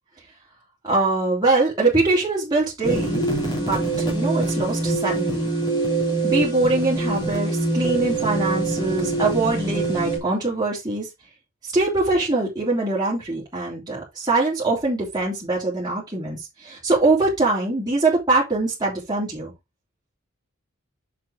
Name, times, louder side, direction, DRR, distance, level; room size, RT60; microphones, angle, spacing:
voice 1, 0.8-3.2 3.6-5.5 6.2-11.1 11.7-19.5, right 2 dB, 20° right, 3.3 m, -23 dB
sound 1, 2.8-10.2, right 2 dB, 20° left, 3.1 m, -24 dB
6.8 x 6.0 x 3.5 m
head